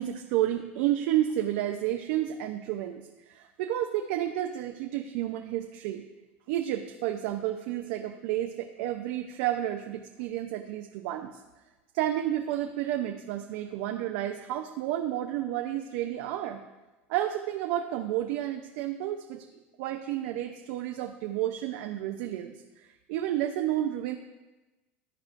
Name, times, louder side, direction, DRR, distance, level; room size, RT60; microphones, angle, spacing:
voice 1, 0.0-6.1 6.5-11.4 11.9-16.6 17.1-19.4 19.8-22.5 23.1-24.2, right 12 dB, 70° right, 5 dB, 0.4 m, -31 dB
11.5 x 4.4 x 2.5 m, 1.1 s
hypercardioid pair, 100°, 7 cm